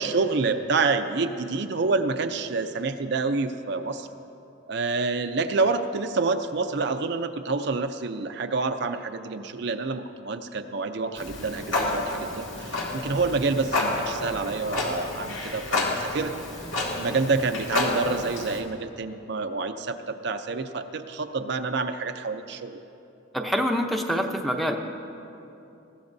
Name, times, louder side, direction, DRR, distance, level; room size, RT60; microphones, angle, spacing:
voice 1, 0.0-4.1 4.7-16.3 17.0-22.8, right 4 dB, 55° right, 7 dB, 0.5 m, -28 dB
Clock, 11.2-18.6, left 2 dB, 70° left, 2.1 m, -30 dB
voice 2, 23.3-24.8, equal, ahead, 3 dB, 0.7 m, -25 dB
20.5 x 15.5 x 2.7 m, 2.8 s
head